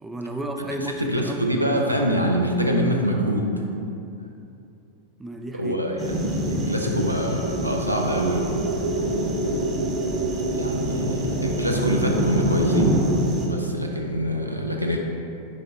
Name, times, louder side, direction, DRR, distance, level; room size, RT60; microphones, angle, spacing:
voice 1, 0.0-1.5 5.2-5.8, right 1 dB, 10° right, 4 dB, 0.4 m, -32 dB
voice 2, 0.8-3.5 5.5-8.5 10.5-13.0 13.4-15.0, equal, 90° right, 1 dB, 0.6 m, -25 dB
sound 1, 6.0-13.5, equal, 25° right, 1.0 m, -27 dB
sound 2, 6.2-13.2, right 2 dB, 50° right, 1.3 m, -29 dB
6.4 x 4.4 x 3.5 m, 2.7 s
figure-of-eight pair, 90°, 0 cm